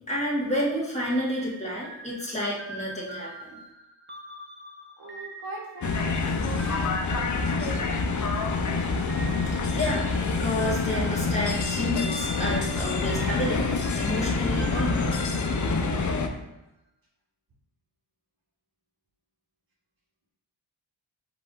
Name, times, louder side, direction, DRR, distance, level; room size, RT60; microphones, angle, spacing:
voice 1, 0.1-3.6 9.7-15.3, equal, 15° left, -6 dB, 1.4 m, -30 dB
sound 1, 1.1-8.5 9.1-16.3, right 1 dB, 25° right, 0.8 m, -44 dB
voice 2, 5.0-8.3, right 2 dB, 45° right, -4 dB, 1.1 m, -41 dB
sound 2, 5.8-16.3, left 4 dB, 40° left, 0.5 m, -27 dB
4.8 x 2.5 x 3.7 m, 0.94 s
cardioid pair, 65°, 49 cm